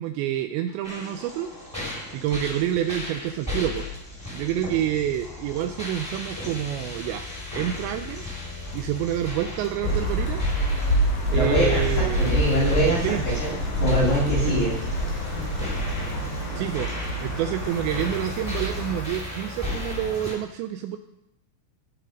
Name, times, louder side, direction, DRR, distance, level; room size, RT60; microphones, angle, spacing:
voice 1, 0.0-1.5 2.1-3.9 4.3-7.3 7.6-8.3 8.7-10.4 11.3-12.3 13.0-13.2 14.4-14.6 16.6-16.9 17.2-21.0, right 11 dB, 80° right, 8 dB, 2.7 m, -28 dB
sound 1, 0.8-20.3, left 2 dB, 5° left, 3.8 m, -35 dB
sound 2, 9.8-19.0, equal, 80° left, 7.9 m, -27 dB
sound 3, 10.7-19.0, right 4 dB, 50° right, 3.3 m, -41 dB
voice 2, 11.3-13.5 13.8-14.7, equal, 50° left, -8 dB, 4.5 m, -24 dB
19.0 x 6.7 x 5.1 m, 0.84 s
omnidirectional pair, 5.5 m